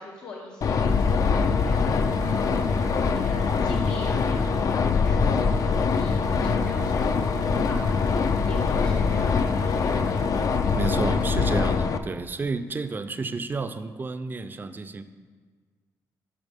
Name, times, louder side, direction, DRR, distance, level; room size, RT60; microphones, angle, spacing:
voice 1, 0.0-10.2, left 3 dB, 80° left, -3 dB, 1.0 m, -41 dB
sound 1, 0.6-12.0, left 5 dB, 50° left, 0.4 m, -23 dB
sound 2, 0.9-11.8, right 3 dB, 85° right, 1.1 m, -38 dB
voice 2, 10.7-15.0, right 4 dB, 30° right, 10 dB, 0.4 m, -31 dB
10.5 x 5.9 x 3.5 m, 1.5 s
cardioid pair, 100°, 7 cm